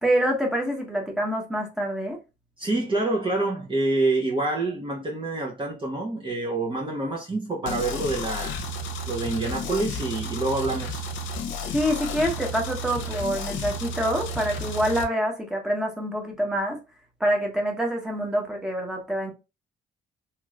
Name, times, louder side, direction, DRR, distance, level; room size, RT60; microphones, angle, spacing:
voice 1, 0.0-2.2 11.7-16.8 17.2-19.3, equal, 5° right, 1.1 m, -26 dB
voice 2, 2.6-8.6 9.1-11.0, right 2 dB, 25° right, 0.8 m, -27 dB
sound 1, 7.7-15.0, left 1 dB, 75° left, 0.7 m, -32 dB
3.0 x 3.0 x 2.4 m
cardioid pair, 90°, 20 cm